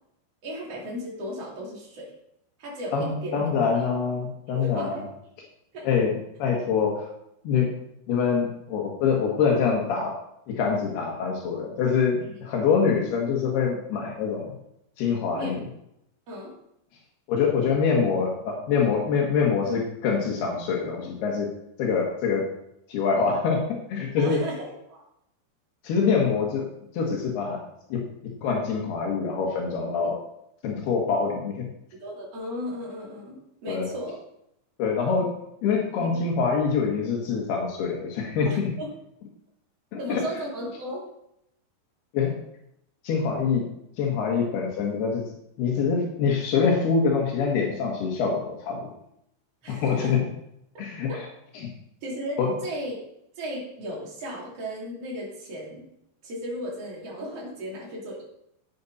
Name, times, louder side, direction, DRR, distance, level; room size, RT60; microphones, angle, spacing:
voice 1, 0.4-2.1 2.6-3.4 3.7-3.9 4.5-5.0 5.7-5.9 12.2-12.4 15.3-15.6 16.3-16.5 24.2-25.0 30.0-30.1 32.0-34.2 36.0-36.2 38.5-38.9 40.0-41.1 49.6-50.1 51.1-51.2 52.0-52.9 53.4-55.9 56.2-58.2, equal, 40° right, -4 dB, 3.8 m, -35 dB
voice 2, 2.9-5.0 5.8-7.0 7.4-7.7 8.1-10.2 10.5-14.6 15.0-15.6 17.3-21.5 21.8-22.5 22.9-24.4 25.8-26.7 26.9-27.6 27.9-30.2 30.6-31.7 33.7-33.9 34.8-35.3 35.6-38.7 40.1-40.2 42.1-42.4 43.0-43.7 44.0-45.2 45.6-48.8 49.7-50.2 50.8-51.3 51.6-51.7 52.4-52.5, left 5 dB, 80° left, -1 dB, 3.4 m, -25 dB
11.5 x 8.4 x 4.1 m, 0.79 s
omnidirectional pair, 4.6 m